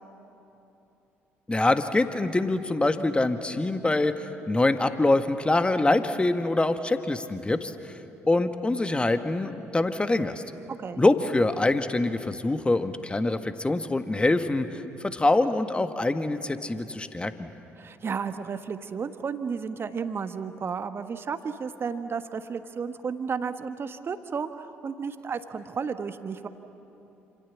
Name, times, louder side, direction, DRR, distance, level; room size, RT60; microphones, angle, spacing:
voice 1, 1.5-7.9 8.3-10.4 11.0-17.5, left 2 dB, 15° left, 9 dB, 1.6 m, -25 dB
voice 2, 17.8-26.5, right 6 dB, 40° right, 9 dB, 1.4 m, -33 dB
28.0 x 27.0 x 7.3 m, 3.0 s
figure-of-eight pair, 50°, 6 cm